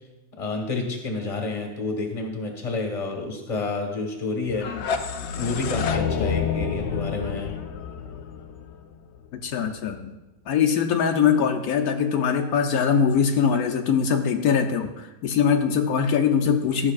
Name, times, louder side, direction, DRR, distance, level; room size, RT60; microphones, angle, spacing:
voice 1, 0.4-4.7 5.3-7.5, left 3 dB, 25° left, 1 dB, 1.2 m, -29 dB
sound 1, 4.5-9.4, left 6 dB, 65° left, 0.7 m, -28 dB
voice 2, 9.4-10.1 10.5-16.9, left 7 dB, 80° left, 3 dB, 1.1 m, -22 dB
12.5 x 6.1 x 2.4 m, 1.0 s
omnidirectional pair, 1.6 m